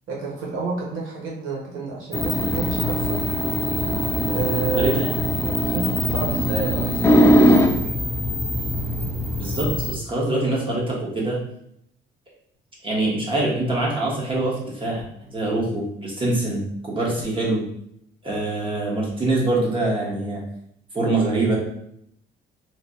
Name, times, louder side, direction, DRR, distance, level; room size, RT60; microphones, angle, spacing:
voice 1, 0.1-3.2 4.3-5.0 5.4-8.0, right 4 dB, 90° right, -3 dB, 1.0 m, -30 dB
sound 1, 2.1-9.9, equal, 15° left, 0.4 m, -21 dB
voice 2, 4.8-5.1 9.4-11.4 12.8-17.6 18.2-20.4 20.9-21.6, right 2 dB, 25° right, -4 dB, 1.2 m, -24 dB
3.2 x 2.2 x 2.7 m, 0.72 s
cardioid pair, 90°, 20 cm